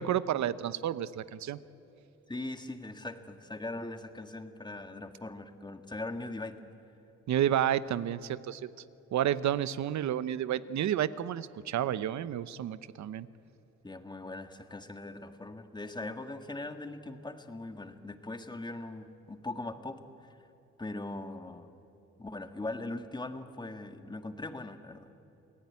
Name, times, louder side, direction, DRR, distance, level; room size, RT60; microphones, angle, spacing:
voice 1, 0.0-1.6 7.3-8.7 9.1-13.3, right 11 dB, 65° right, 15 dB, 0.9 m, -30 dB
voice 2, 2.3-6.6 13.8-20.4 20.8-21.7 22.2-25.2, left 2 dB, 15° left, 7 dB, 1.7 m, -40 dB
28.0 x 17.5 x 9.6 m, 2.9 s
cardioid pair, 90°, 30 cm